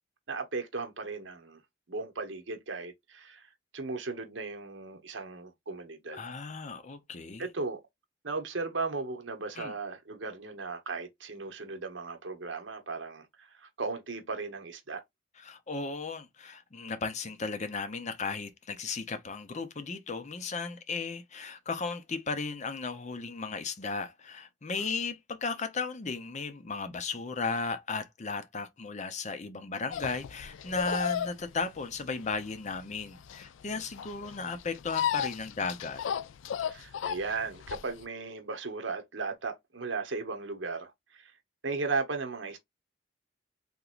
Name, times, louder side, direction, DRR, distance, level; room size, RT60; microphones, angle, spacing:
voice 1, 0.3-1.6 1.9-3.4 3.7-6.2 7.4-7.8 8.2-15.0 24.8-24.9 33.7-33.8 36.6-41.3 41.6-42.6, right 4 dB, 75° right, 1.0 m, -36 dB
voice 2, 6.1-7.5 9.6-9.7 15.4-36.0, left 4 dB, 40° left, 0.6 m, -35 dB
sound 1, 29.9-38.0, left 8 dB, 85° left, 0.4 m, -35 dB
3.6 x 2.9 x 2.4 m
head